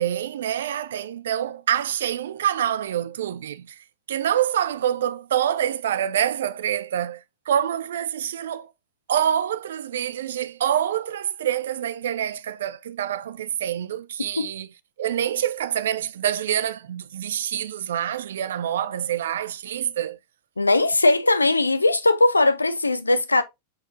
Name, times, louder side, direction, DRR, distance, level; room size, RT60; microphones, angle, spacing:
voice 1, 0.0-7.2 7.5-8.7 9.1-14.7 15.0-20.2, right 10 dB, 60° right, 0.3 m, -26 dB
voice 2, 20.6-23.4, left 2 dB, 80° left, 0.4 m, -19 dB
5.2 x 4.1 x 2.4 m
figure-of-eight pair, 90°, 0 cm